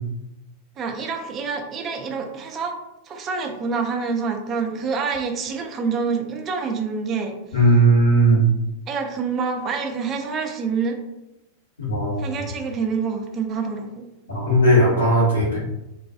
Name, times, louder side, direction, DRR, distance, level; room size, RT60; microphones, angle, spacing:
voice 1, 0.8-2.8 3.1-7.4 8.9-11.0 12.2-14.0, right 5 dB, 30° right, 3 dB, 0.4 m, -27 dB
voice 2, 7.5-8.4 11.8-12.2 14.3-15.6, right 1 dB, 75° left, -6 dB, 1.0 m, -17 dB
2.3 x 2.2 x 2.6 m, 0.91 s
figure-of-eight pair, 90°, 0 cm